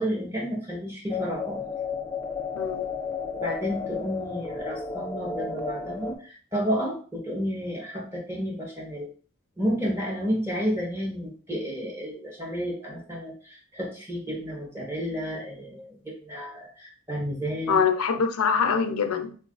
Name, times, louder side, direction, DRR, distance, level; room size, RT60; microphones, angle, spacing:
voice 1, 0.0-1.6 3.3-9.1 9.6-17.8, equal, 10° right, -3 dB, 1.4 m, -31 dB
sound 1, 1.1-6.2, left 5 dB, 15° left, 0.4 m, -32 dB
voice 2, 2.5-2.9 17.7-19.4, left 6 dB, 90° left, 8 dB, 0.6 m, -24 dB
3.7 x 3.1 x 3.9 m, 0.41 s
head